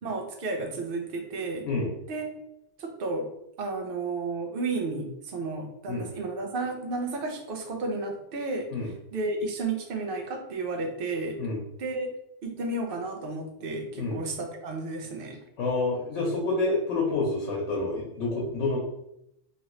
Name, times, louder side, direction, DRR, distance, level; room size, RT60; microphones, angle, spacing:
voice 1, 0.0-1.7 2.1-2.3 2.8-3.3 3.6-8.7 9.1-11.4 11.8-12.1 12.4-15.4, right 3 dB, 60° right, 3 dB, 0.7 m, -32 dB
voice 2, 15.6-18.8, left 3 dB, 90° left, -2 dB, 1.0 m, -28 dB
2.9 x 2.5 x 3.0 m, 0.80 s
omnidirectional pair, 1.2 m